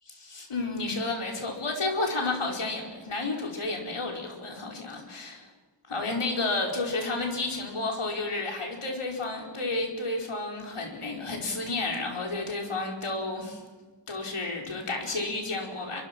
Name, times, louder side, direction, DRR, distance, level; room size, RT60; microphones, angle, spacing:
voice 1, 0.1-5.5 5.9-13.6 14.1-16.0, left 2 dB, 85° left, 1 dB, 4.7 m, -31 dB
26.0 x 23.0 x 6.1 m, 1.4 s
cardioid pair, 45°, 49 cm